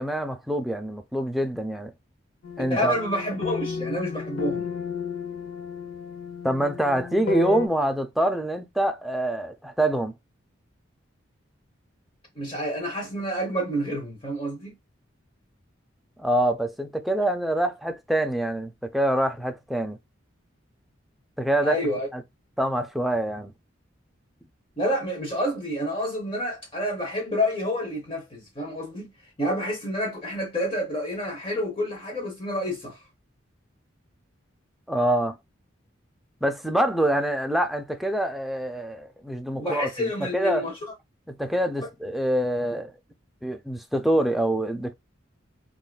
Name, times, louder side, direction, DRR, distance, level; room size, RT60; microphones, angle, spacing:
voice 1, 0.0-1.9 2.6-2.9 6.4-10.1 16.2-20.0 21.4-21.8 22.1-22.2 22.6-23.5 34.9-35.4 36.4-39.9 40.3-40.6 41.3-42.9 43.4-44.9, right 1 dB, ahead, 0.3 m, -25 dB
sound 1, 2.4-7.7, left 6 dB, 85° left, 0.6 m, -33 dB
voice 2, 2.7-4.7 12.4-14.7 21.6-22.1 24.8-29.1 29.4-33.0 39.6-40.7, equal, 25° left, 0.8 m, -28 dB
3.5 x 2.4 x 2.3 m
head